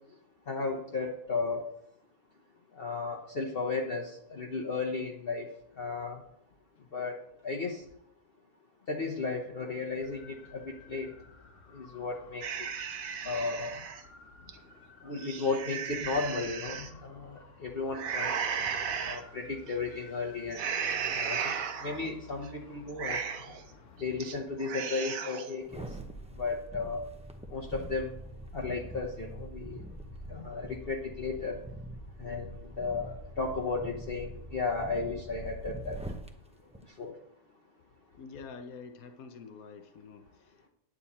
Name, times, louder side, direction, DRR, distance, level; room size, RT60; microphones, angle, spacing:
voice 1, 0.5-1.6 2.8-5.4 5.8-6.2 6.9-7.2 7.4-7.8 8.9-11.1 11.7-12.4 13.2-13.7 15.0-18.3 19.0-20.6 21.1-21.6 21.8-23.2 24.0-25.8 26.4-27.0 27.5-28.1 28.5-29.8 30.3-31.6 32.2-32.5 32.8-36.0 37.0-37.1, left 4 dB, 45° left, 0 dB, 1.2 m, -34 dB
sound 1, 10.0-24.7, left 5 dB, 60° left, 1.6 m, -54 dB
sound 2, 12.4-14.0 14.5-14.6 15.1-16.9 17.9-19.2 19.7-20.0 20.5-22.1 22.4-22.5 22.9-23.6 24.0-24.4 24.6-25.5, right 7 dB, 75° right, 1.3 m, -35 dB
sound 3, 25.6-36.3 36.7-36.8, right 1 dB, 5° right, 0.7 m, -44 dB
voice 2, 38.2-40.7, left 5 dB, 80° left, 7 dB, 1.3 m, -47 dB
9.9 x 8.9 x 4.2 m, 0.75 s
omnidirectional pair, 1.5 m